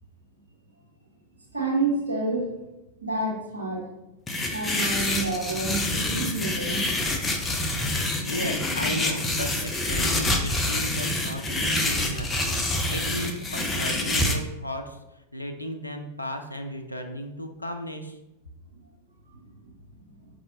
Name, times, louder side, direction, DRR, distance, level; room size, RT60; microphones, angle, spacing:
voice 1, 1.5-2.5 3.0-3.9 4.5-6.8 19.6-19.7, right 2 dB, 80° right, -3 dB, 1.0 m, -28 dB
sound 1, 4.3-14.3, left 1 dB, 15° left, 0.5 m, -27 dB
voice 2, 8.2-18.2, equal, 85° left, 5 dB, 0.3 m, -35 dB
5.1 x 2.6 x 2.6 m, 0.94 s
figure-of-eight pair, 90°, 0 cm